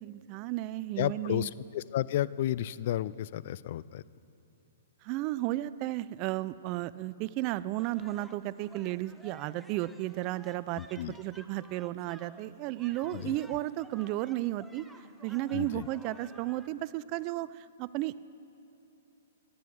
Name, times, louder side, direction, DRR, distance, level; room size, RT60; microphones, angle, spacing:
voice 1, 0.0-1.5 5.0-14.8 15.2-18.2, right 16 dB, 35° right, 18 dB, 0.3 m, -34 dB
voice 2, 1.0-4.0 10.8-11.1 13.1-13.3 15.5-15.9, left 12 dB, 55° left, 19 dB, 0.3 m, -32 dB
sound 1, 7.8-16.7, equal, ahead, 0.6 m, -54 dB
15.5 x 11.0 x 4.7 m, 2.9 s
hypercardioid pair, 135°, 0 cm